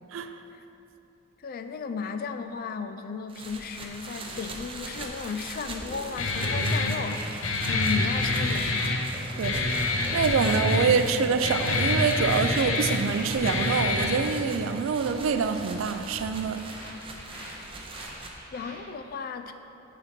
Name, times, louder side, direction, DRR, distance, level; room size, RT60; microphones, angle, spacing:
voice 1, 0.1-0.4 9.4-9.9 10.1-16.6, right 5 dB, 75° right, 0.4 m, -26 dB
voice 2, 1.4-9.0 18.5-19.5, left 5 dB, 45° left, 0.3 m, -35 dB
sound 1, 3.3-18.3, right 2 dB, 25° right, 0.6 m, -41 dB
sound 2, 5.8-6.0 6.3-10.8 11.1-14.0 14.3-14.5 14.7-15.1 15.4-15.7 16.0-18.7, equal, 15° left, 1.7 m, -43 dB
Guitar, 6.2-14.2, left 2 dB, 85° left, 0.7 m, -27 dB
6.9 x 4.0 x 5.9 m
head